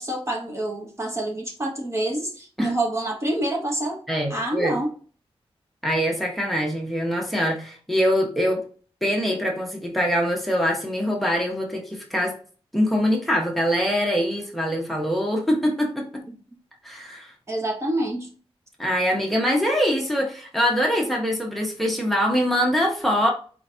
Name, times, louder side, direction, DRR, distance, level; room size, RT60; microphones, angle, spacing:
voice 1, 0.0-4.0 4.3-4.9 16.3-16.4 17.5-18.3, right 1 dB, 25° right, 0 dB, 1.0 m, -27 dB
voice 2, 4.1-4.8 5.8-8.6 9.0-12.4 12.7-16.2 16.8-17.3 18.8-23.3, equal, ahead, 0 dB, 1.1 m, -23 dB
4.7 x 3.9 x 2.7 m, 0.40 s
wide cardioid pair, 160°, 10 cm